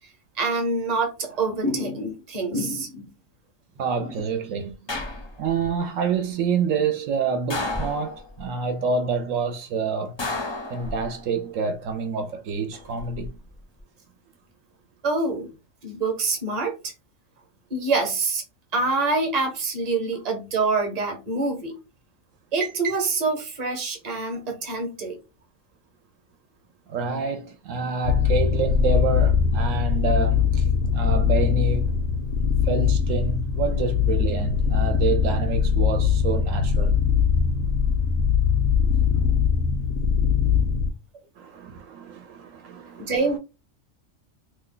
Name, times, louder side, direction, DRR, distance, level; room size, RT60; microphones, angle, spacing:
voice 1, 0.4-3.1 4.0-4.1 15.0-15.5 15.8-16.9 17.7-18.4 18.7-21.7 22.5-25.2 43.0-43.4, right 3 dB, 35° right, 0.9 m, -26 dB
voice 2, 3.8-4.7 5.4-10.2 10.7-13.4 26.9-31.9 32.6-37.0 41.4-43.1, right 5 dB, 75° right, 0.9 m, -27 dB
sound 1, 4.9-5.7 7.5-8.4 10.2-11.3 12.7-13.3, left 2 dB, 35° left, 0.5 m, -32 dB
sound 2, 28.0-40.9, left 7 dB, 75° left, 0.9 m, -21 dB
2.7 x 2.2 x 3.7 m
omnidirectional pair, 1.4 m